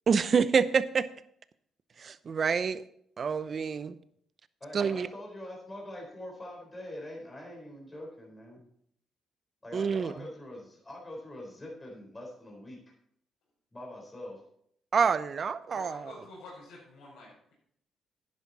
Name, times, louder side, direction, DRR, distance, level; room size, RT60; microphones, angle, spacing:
voice 1, 0.1-1.1 2.0-2.8 3.2-4.0 4.7-5.1 9.7-10.1 14.9-16.1, right 6 dB, 45° right, 14 dB, 0.7 m, -27 dB
voice 2, 4.6-8.7 9.6-12.8 13.7-14.4, left 1 dB, 20° left, -2 dB, 4.1 m, -44 dB
voice 3, 15.7-17.5, left 2 dB, 90° left, -7 dB, 5.1 m, -48 dB
11.0 x 10.5 x 4.2 m, 0.68 s
cardioid pair, 90°, 0 cm